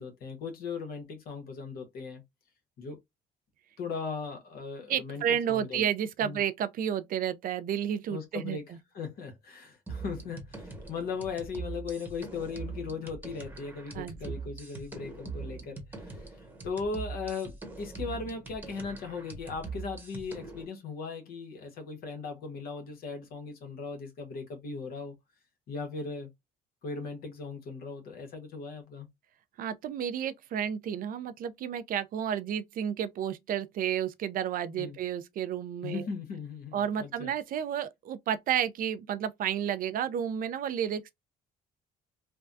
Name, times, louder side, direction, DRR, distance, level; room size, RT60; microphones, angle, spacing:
voice 1, 0.0-2.2 2.8-3.0 3.8-5.9 6.2-6.4 8.1-16.2 16.6-25.2 25.7-26.3 26.8-29.1 34.8-35.0 35.8-37.3, left 5 dB, 65° left, 1.2 m, -38 dB
voice 2, 4.9-8.8 13.9-14.2 29.6-36.0 36.7-41.1, right 9 dB, 55° right, 0.5 m, -31 dB
sound 1, 9.9-20.6, right 4 dB, 10° right, 1.0 m, -42 dB
3.4 x 2.2 x 2.5 m
cardioid pair, 110°, 17 cm